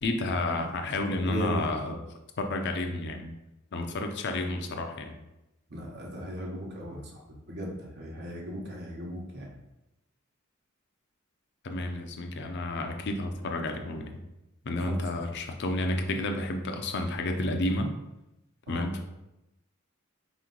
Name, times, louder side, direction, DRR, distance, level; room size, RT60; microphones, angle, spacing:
voice 1, 0.0-2.0 2.4-3.3 3.7-5.2 11.6-14.1 14.6-17.9 18.7-19.0, left 2 dB, 55° left, 5 dB, 0.5 m, -31 dB
voice 2, 1.1-1.6 5.7-7.2 7.5-9.5 14.9-15.0 18.7-18.9, equal, 55° right, -1 dB, 1.0 m, -37 dB
4.1 x 3.0 x 3.8 m, 0.94 s
head